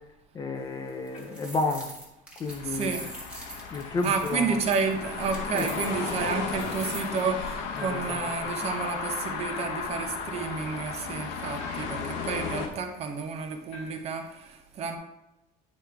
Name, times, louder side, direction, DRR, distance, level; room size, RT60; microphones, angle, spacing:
voice 1, 0.3-1.9 2.4-3.1 3.7-4.6 5.5-5.7 7.8-8.5, left 3 dB, 20° left, 5 dB, 0.5 m, -31 dB
sound 1, 0.9-7.2, right 2 dB, 5° right, 1.4 m, -43 dB
sound 2, 1.1-1.5 2.9-3.2 5.0-5.4 7.7-8.3 9.5-10.1 11.6-12.1 13.7-14.2, equal, 35° left, 1.1 m, -48 dB
sound 3, 2.5-12.7, left 5 dB, 85° left, 1.1 m, -35 dB
voice 2, 2.6-3.1 3.8-15.0, right 5 dB, 35° right, 5 dB, 0.8 m, -31 dB
9.5 x 5.0 x 3.4 m, 0.94 s
cardioid pair, 180°, 18 cm